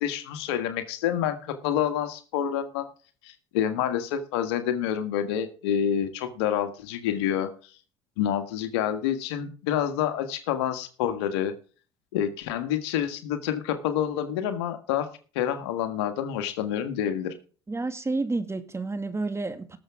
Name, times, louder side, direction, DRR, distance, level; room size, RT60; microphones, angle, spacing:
voice 1, 0.0-2.9 3.2-7.5 8.2-11.5 12.1-17.3, left 9 dB, 85° left, 1.7 m, -28 dB
voice 2, 17.7-19.8, right 3 dB, 20° right, 2.3 m, -30 dB
19.0 x 7.4 x 3.7 m
supercardioid pair, 75°, 14 cm